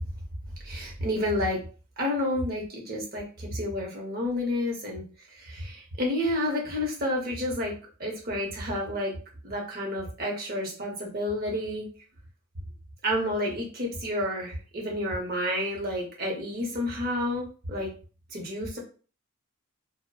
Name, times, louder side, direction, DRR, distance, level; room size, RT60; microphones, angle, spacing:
voice 1, 0.6-1.6 2.0-5.0 5.4-7.7 8.0-9.1 9.4-11.9 13.0-17.9 18.3-18.8, left 1 dB, 40° right, 0 dB, 0.7 m, -30 dB
2.6 x 2.0 x 2.3 m, 0.37 s
head